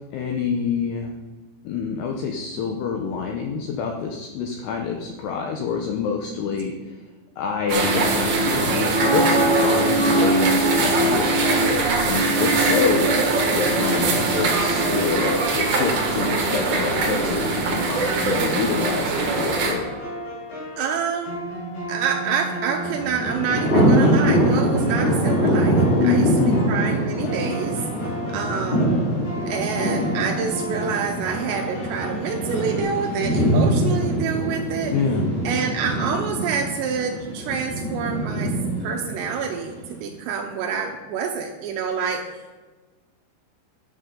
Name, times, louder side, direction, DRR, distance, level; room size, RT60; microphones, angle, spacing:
voice 1, 0.1-1.1 1.6-6.9 7.4-13.1 13.5-20.0 26.0-26.7 34.9-35.2, left 6 dB, 80° left, 2 dB, 2.4 m, -26 dB
sound 1, 7.7-19.7, right 3 dB, 60° right, 2.2 m, -21 dB
sound 2, 13.5-32.8, right 1 dB, 65° left, 6.7 m, -34 dB
voice 2, 20.8-21.4 21.9-27.8 28.3-28.9 29.5-35.0 35.4-38.5 38.8-42.6, right 6 dB, 80° right, 2 dB, 2.6 m, -27 dB
Thunder, 22.8-39.8, right 1 dB, 15° left, 3.1 m, -23 dB
12.5 x 11.0 x 3.8 m, 1.3 s
omnidirectional pair, 5.8 m